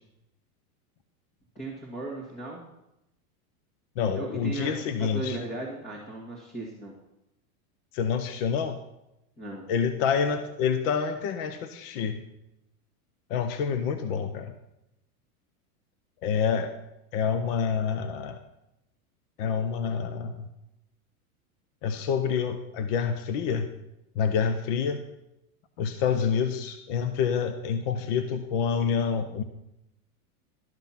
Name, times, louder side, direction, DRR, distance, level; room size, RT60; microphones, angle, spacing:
voice 1, 1.6-2.6 4.2-6.9 9.4-9.7, right 2 dB, 15° left, -5 dB, 1.7 m, -36 dB
voice 2, 4.0-5.4 7.9-8.8 9.7-12.2 13.3-14.5 16.2-16.7 17.1-18.4 19.4-20.5 21.8-23.7 24.2-25.0 25.8-29.4, left 6 dB, 40° left, 9 dB, 0.7 m, -27 dB
12.0 x 5.7 x 5.8 m, 0.87 s
supercardioid pair, 160°, 45 cm